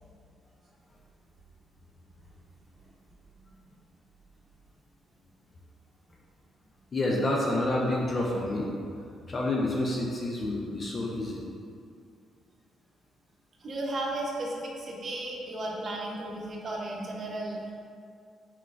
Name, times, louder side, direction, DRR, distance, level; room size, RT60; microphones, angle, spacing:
voice 1, 6.9-8.7 9.3-11.4, left 1 dB, 35° left, -2 dB, 0.5 m, -28 dB
voice 2, 13.6-17.7, right 1 dB, 45° right, -3 dB, 0.8 m, -34 dB
4.4 x 3.7 x 2.4 m, 2.4 s
cardioid pair, 90°, 0 cm